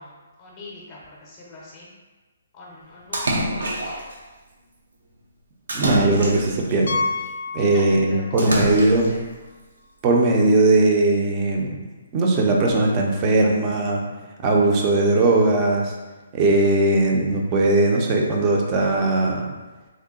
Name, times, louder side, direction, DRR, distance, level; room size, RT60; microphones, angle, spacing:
voice 1, 0.0-1.9 2.5-4.2 7.6-8.0 8.3-9.2, left 2 dB, 25° left, -5 dB, 0.6 m, -41 dB
Splash splatter, 3.1-4.1 5.7-6.8 8.4-9.2, right 1 dB, 85° right, 0.7 m, -26 dB
voice 2, 5.7-7.0 7.5-9.1 10.0-11.8 12.1-14.0 14.4-16.0 16.3-19.5, right 2 dB, 25° right, 0 dB, 0.5 m, -19 dB
Piano, 6.9-8.5 8.7-8.9 9.5-9.6 9.8-9.9 12.0-12.1, left 3 dB, 75° left, 0.4 m, -29 dB
3.7 x 2.1 x 3.6 m, 1.2 s
hypercardioid pair, 160°, 0 cm